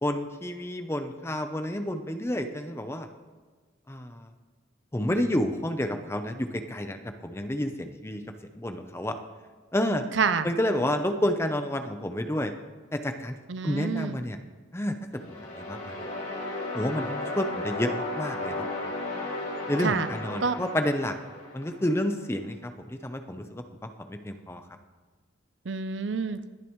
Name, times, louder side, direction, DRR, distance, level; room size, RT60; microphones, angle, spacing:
voice 1, 0.0-3.1 3.9-4.3 4.9-7.0 7.2-8.2 8.5-9.2 9.7-10.0 10.4-12.5 12.9-13.3 13.6-14.4 14.7-15.0 15.6-15.9 16.7-18.7 19.7-21.1 21.5-24.6, left 1 dB, 15° left, 7 dB, 0.7 m, -29 dB
voice 2, 10.1-10.5 13.5-14.2 19.8-20.1 20.4-20.6 25.7-26.4, right 5 dB, 70° right, 11 dB, 0.6 m, -27 dB
sound 1, 15.1-22.1, left 2 dB, 45° left, 4.0 m, -35 dB
20.5 x 10.5 x 3.1 m, 1.4 s
head